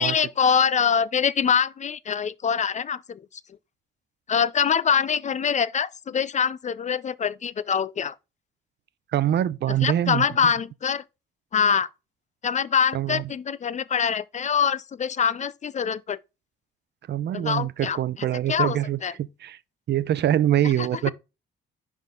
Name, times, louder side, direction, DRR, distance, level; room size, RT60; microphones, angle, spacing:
voice 1, 0.0-3.2 4.3-8.1 9.7-11.0 11.5-11.9 12.4-16.2 17.3-19.1 20.8-21.1, left 7 dB, 35° left, 0.5 m, -24 dB
voice 2, 9.1-10.2 12.9-13.2 17.1-19.6 19.9-21.1, right 11 dB, 60° right, 0.6 m, -24 dB
10.5 x 3.7 x 3.7 m
cardioid pair, 90°, 20 cm